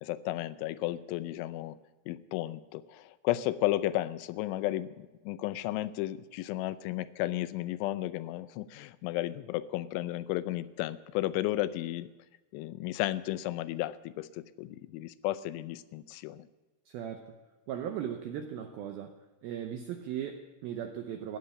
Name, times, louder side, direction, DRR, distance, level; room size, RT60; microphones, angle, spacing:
voice 1, 0.0-1.8 2.1-12.1 12.5-16.5, left 15 dB, 90° left, 14 dB, 3.1 m, -33 dB
voice 2, 16.9-17.3 17.7-19.1 19.4-21.4, right 9 dB, 85° right, 6 dB, 2.1 m, -37 dB
14.5 x 9.2 x 9.7 m, 1.2 s
omnidirectional pair, 5.4 m